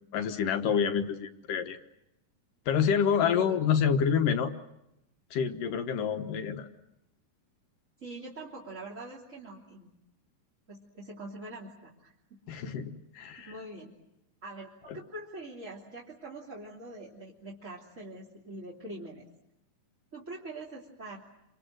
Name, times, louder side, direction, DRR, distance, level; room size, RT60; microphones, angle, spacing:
voice 1, 0.1-1.8 2.7-4.5 5.3-6.7 12.5-13.5, left 7 dB, 65° left, 7 dB, 2.6 m, -27 dB
voice 2, 3.2-3.6 8.0-9.9 10.7-12.4 13.4-13.9 14.4-19.3 20.1-21.2, right 1 dB, 20° right, -4 dB, 2.8 m, -44 dB
30.0 x 26.5 x 6.4 m, 0.86 s
omnidirectional pair, 4.4 m